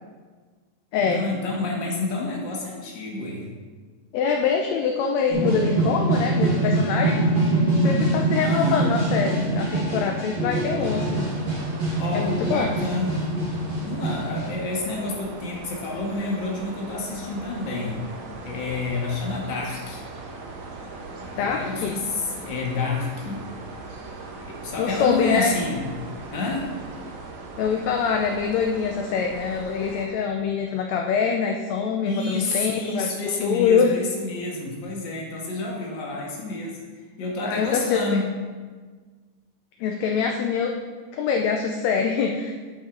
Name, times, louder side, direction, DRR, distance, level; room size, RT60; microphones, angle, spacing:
voice 1, 1.0-3.5 8.4-8.9 12.0-13.3 13.8-18.1 18.4-20.0 21.2-23.5 24.4-25.9 26.3-26.8 32.0-36.8 37.2-38.3, left 3 dB, 45° left, -2 dB, 1.8 m, -29 dB
voice 2, 4.1-7.2 7.8-11.3 12.1-12.7 21.4-22.0 24.8-25.5 27.6-33.9 37.4-38.2 39.8-40.7 41.1-42.5, left 6 dB, 80° left, 2 dB, 1.6 m, -24 dB
sound 1, 5.3-14.5, right 2 dB, 25° right, 1.2 m, -23 dB
sound 2, 10.8-30.1, right 3 dB, 70° right, 1.2 m, -39 dB
11.0 x 5.5 x 3.8 m, 1.5 s
omnidirectional pair, 3.7 m